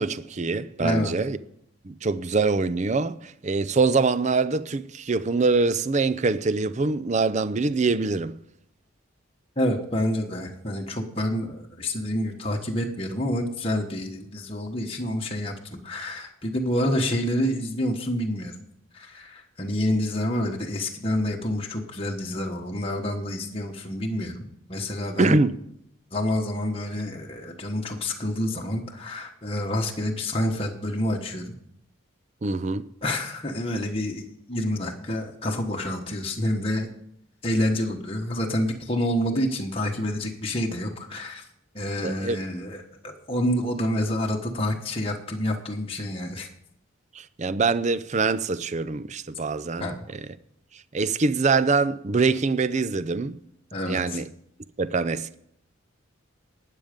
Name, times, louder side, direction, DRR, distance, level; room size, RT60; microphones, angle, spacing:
voice 1, 0.0-1.4 1.8-8.4 25.2-25.6 32.4-32.8 42.0-42.4 47.1-50.3 50.9-53.4 53.9-54.2 54.8-55.3, right 4 dB, 35° right, 0.5 m, -24 dB
voice 2, 0.8-1.2 9.6-18.5 18.9-24.4 24.7-25.4 26.1-31.5 33.0-36.9 37.4-41.5 41.7-46.5 49.8-50.0 53.7-54.2, left 1 dB, 25° left, 1.2 m, -28 dB
12.5 x 9.3 x 5.2 m
head